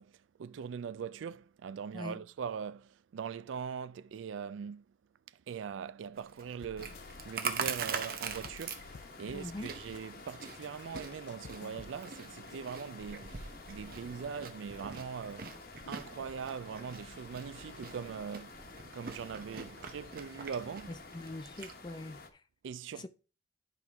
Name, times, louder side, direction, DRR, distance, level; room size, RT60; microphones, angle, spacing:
voice 1, 0.0-4.8 5.3-20.9 22.6-23.1, right 6 dB, 85° right, 0.4 m, -42 dB
Chewing mastication, 6.1-21.7, right 6 dB, 50° right, 0.8 m, -43 dB
sound 1, 6.6-7.3 7.6-10.0 10.3-12.0, left 4 dB, 70° left, 0.6 m, -52 dB
sound 2, 6.8-22.3, left 3 dB, 50° left, 1.0 m, -51 dB
voice 2, 9.3-9.7 20.9-22.4 23.0-23.1, left 2 dB, 25° left, 0.5 m, -43 dB
11.0 x 4.5 x 3.5 m
head